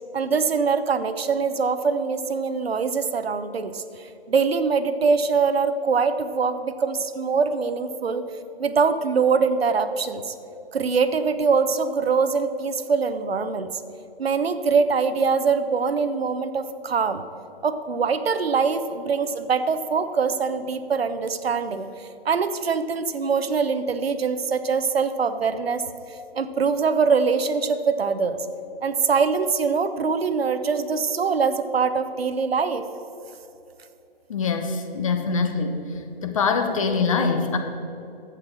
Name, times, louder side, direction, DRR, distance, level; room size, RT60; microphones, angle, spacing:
voice 1, 0.1-8.2 8.6-10.3 10.7-13.7 14.2-17.2 17.6-25.8 26.4-28.4 28.8-32.9, right 5 dB, 75° right, 10 dB, 0.9 m, -23 dB
voice 2, 34.3-35.8 36.2-37.6, left 5 dB, 35° left, 7 dB, 1.0 m, -23 dB
11.0 x 8.2 x 6.3 m, 2.9 s
hypercardioid pair, 155°, 31 cm